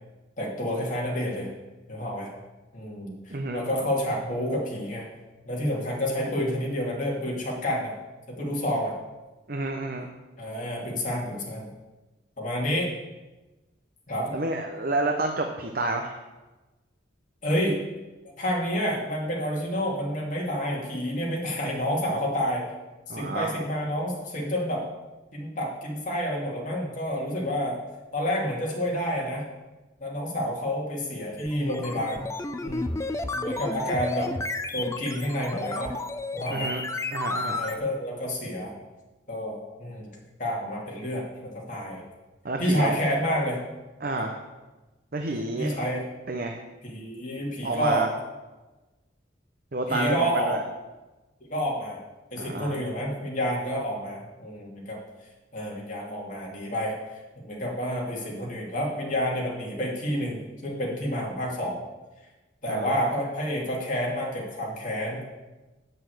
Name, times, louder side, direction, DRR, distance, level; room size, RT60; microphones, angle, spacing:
voice 1, 0.4-1.5 1.9-2.3 2.7-5.1 5.4-7.9 8.4-8.9 10.4-11.7 12.4-12.9 14.1-14.3 17.4-17.8 18.4-22.6 23.1-24.8 25.3-27.8 28.1-29.4 30.0-32.3 32.6-33.0 33.3-34.3 34.7-35.9 36.3-36.7 37.4-38.7 39.3-40.1 40.4-42.0 42.6-43.6 44.2-44.3 45.6-46.0 46.8-48.1 49.9-50.6 51.5-52.0 52.3-55.0 55.5-56.9 57.4-61.8 62.6-65.2, equal, 40° left, -3 dB, 2.6 m, -29 dB
voice 2, 3.3-3.6 9.5-10.1 14.3-16.2 23.1-23.5 36.5-36.8 37.1-37.6 42.4-43.0 44.0-44.4 45.1-45.8 46.3-46.6 47.6-48.1 49.7-50.6 52.4-52.8 62.7-63.1, right 2 dB, 45° right, 3 dB, 0.8 m, -29 dB
sound 1, 31.4-37.8, left 2 dB, 15° left, 0.4 m, -32 dB
8.2 x 6.7 x 7.9 m, 1.1 s
head